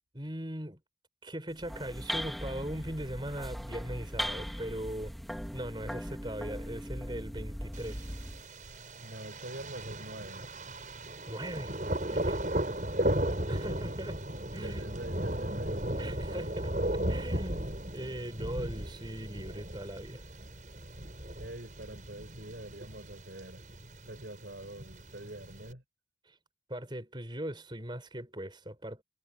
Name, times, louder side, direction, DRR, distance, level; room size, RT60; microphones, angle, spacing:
voice 1, 0.1-0.8 1.2-5.1 5.5-8.1 11.3-11.7 12.0-12.4 13.5-14.2 14.5-14.9 16.0-16.7 17.1-17.6 17.9-20.2 26.3-26.4 26.7-29.0, right 1 dB, 25° right, 4.6 m, -39 dB
sound 1, 1.5-8.5, equal, ahead, 1.4 m, -39 dB
Thunder, 7.7-25.7, right 1 dB, 45° right, 7.2 m, -36 dB
voice 2, 9.0-10.5 12.7-13.2 13.6-14.1 14.6-15.9 16.3-16.8 17.3-17.4 21.4-23.6 24.1-25.8, right 1 dB, 65° right, 5.3 m, -45 dB
head